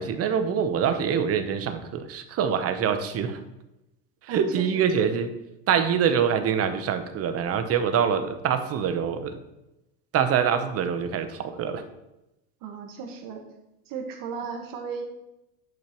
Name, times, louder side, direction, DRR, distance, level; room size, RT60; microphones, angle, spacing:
voice 1, 0.0-3.4 4.2-5.3 5.7-9.4 10.1-11.8, right 7 dB, 35° right, 9 dB, 0.8 m, -25 dB
voice 2, 4.3-5.1 12.6-13.4 13.9-15.0, right 5 dB, 50° right, 4 dB, 1.5 m, -36 dB
10.5 x 5.6 x 3.0 m, 0.92 s
supercardioid pair, 120°, 42 cm